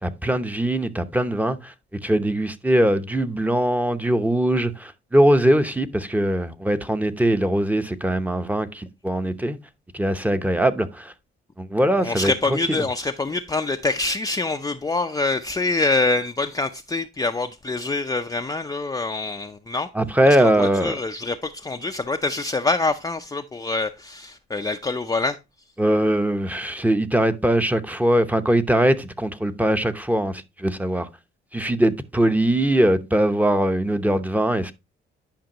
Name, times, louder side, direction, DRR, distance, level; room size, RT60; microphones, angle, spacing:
voice 1, 0.0-1.7 2.0-9.6 9.9-11.1 11.6-12.6 19.9-21.0 25.8-31.1 31.5-34.7, right 1 dB, 10° right, 0.8 m, -21 dB
voice 2, 12.0-19.9 20.4-25.4, left 3 dB, 20° left, 0.5 m, -25 dB
10.5 x 5.2 x 2.9 m
cardioid pair, 90°, 20 cm